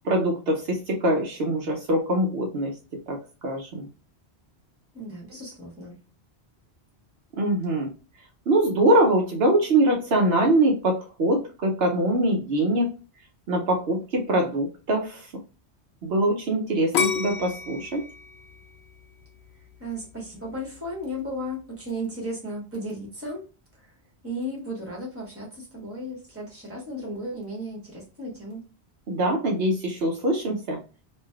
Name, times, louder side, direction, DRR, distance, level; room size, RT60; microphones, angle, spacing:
voice 1, 0.0-2.8 3.1-3.9 7.4-7.9 8.5-12.9 13.5-15.3 16.0-18.0 29.1-30.8, right 1 dB, 70° right, 1 dB, 0.9 m, -23 dB
voice 2, 4.9-6.0 19.8-23.4 24.2-28.6, equal, 15° right, -3 dB, 1.1 m, -35 dB
sound 1, 16.9-19.9 20.4-20.9, left 7 dB, 75° left, 0.9 m, -29 dB
3.2 x 2.6 x 2.2 m, 0.33 s
omnidirectional pair, 1.1 m